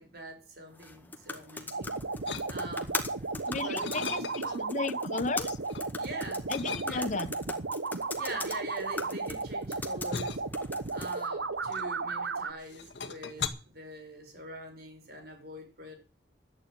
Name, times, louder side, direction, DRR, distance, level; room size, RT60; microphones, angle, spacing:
voice 1, 0.0-2.0 2.5-3.0 3.3-4.7 6.0-6.5 6.8-7.3 8.2-10.4 10.9-16.0, right 1 dB, 60° right, 5.3 m, -44 dB
sound 1, 0.7-11.3, left 3 dB, 10° left, 1.8 m, -41 dB
sound 2, 1.7-12.5, right 3 dB, 90° right, 1.1 m, -34 dB
sound 3, 2.3-2.9 3.4-4.7 5.1-5.9 6.5-7.3 8.1-12.3 12.6-13.5, left 6 dB, 75° left, 1.7 m, -39 dB
voice 2, 3.5-4.2 4.5-5.6 6.5-7.3, left 4 dB, 40° left, 0.6 m, -34 dB
12.0 x 9.5 x 8.9 m
head